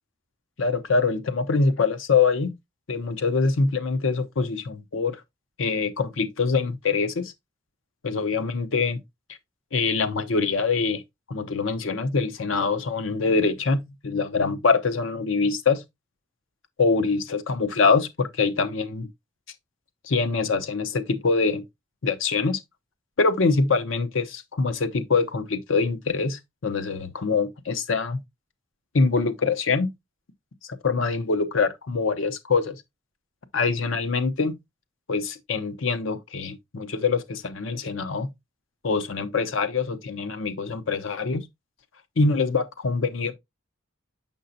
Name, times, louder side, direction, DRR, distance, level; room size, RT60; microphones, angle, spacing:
voice 1, 0.6-2.5 2.9-5.2 5.6-7.3 8.0-9.0 9.7-11.0 11.3-15.8 16.8-19.1 20.0-21.6 22.0-22.6 23.2-28.2 28.9-29.9 30.8-32.8 33.5-34.5 35.1-38.3 38.8-41.5 42.2-43.3, left 4 dB, 85° left, 0.7 m, -24 dB
6.7 x 5.4 x 2.6 m
head